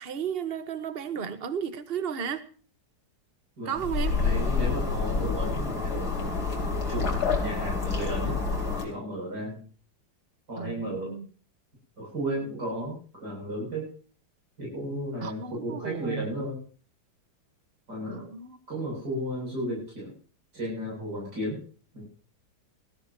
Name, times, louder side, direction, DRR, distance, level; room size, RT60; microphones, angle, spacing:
voice 1, 0.0-2.5 3.6-4.2 10.6-11.3 15.2-16.3 18.1-18.6, right 7 dB, 35° right, 12 dB, 1.4 m, -34 dB
sound 1, 3.8-8.9, left 4 dB, 60° left, 3.9 m, -28 dB
voice 2, 4.2-6.2 6.9-8.4 8.8-9.6 10.5-11.1 12.0-13.9 14.6-16.6 17.9-18.3 18.7-20.1 20.5-21.6 21.9-22.0, equal, 65° right, -4 dB, 8.7 m, -34 dB
21.0 x 14.5 x 2.9 m, 0.40 s
omnidirectional pair, 1.9 m